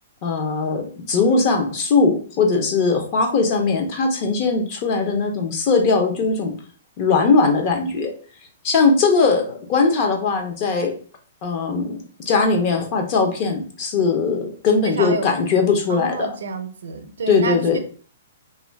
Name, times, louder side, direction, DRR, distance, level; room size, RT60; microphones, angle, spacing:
voice 1, 0.2-6.5 7.0-8.1 8.6-10.9 11.4-16.3 17.3-17.8, left 4 dB, 30° left, 3 dB, 0.6 m, -20 dB
voice 2, 14.8-15.3 15.9-17.8, right 3 dB, 85° right, 7 dB, 0.5 m, -28 dB
2.4 x 2.2 x 3.2 m, 0.42 s
hypercardioid pair, 165°, 0 cm